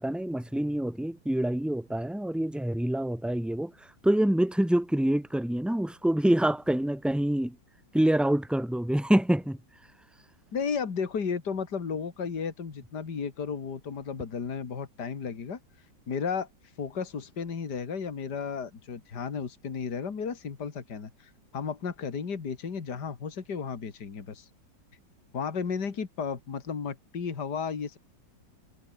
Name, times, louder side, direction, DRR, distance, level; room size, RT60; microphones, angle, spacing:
voice 1, 0.0-3.7 4.0-7.5 7.9-9.6, right 1 dB, ahead, 0.8 m, -26 dB
voice 2, 10.5-15.6 16.1-16.5 16.8-24.5 25.3-28.0, left 6 dB, 60° left, 2.9 m, -34 dB
omnidirectional pair, 2.1 m